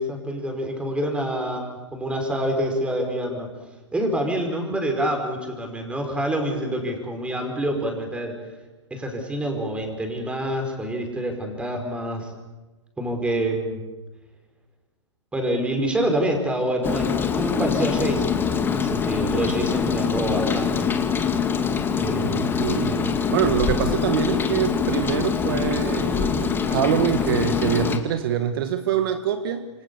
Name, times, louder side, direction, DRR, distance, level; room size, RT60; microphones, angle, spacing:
voice 1, 0.0-3.5 3.9-8.4 8.9-12.3 13.0-13.8 15.3-20.9 22.0-22.5, right 1 dB, 5° right, 4 dB, 5.2 m, -27 dB
Rain, 16.8-28.0, left 6 dB, 15° left, 2.1 m, -24 dB
voice 2, 22.2-29.7, right 9 dB, 50° right, 9 dB, 1.6 m, -25 dB
27.5 x 24.5 x 7.2 m, 1.2 s
hypercardioid pair, 130°, 16 cm